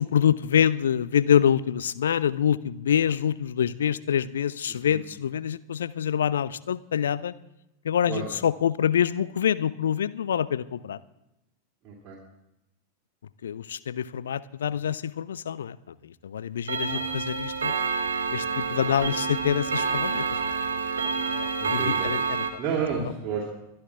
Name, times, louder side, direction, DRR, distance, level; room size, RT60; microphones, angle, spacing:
voice 1, 0.0-7.3 7.8-11.0 13.4-17.7 18.3-20.7 21.2-22.4, left 9 dB, 65° left, 16 dB, 0.5 m, -26 dB
voice 2, 4.7-5.0 8.1-8.3 11.8-12.2 16.9-17.1 21.6-22.1 22.6-23.5, right 6 dB, 30° right, -4 dB, 3.1 m, -31 dB
Clock, 16.7-22.5, right 5 dB, 70° right, 1.5 m, -28 dB
23.5 x 10.5 x 3.6 m, 0.90 s
figure-of-eight pair, 90°, 0 cm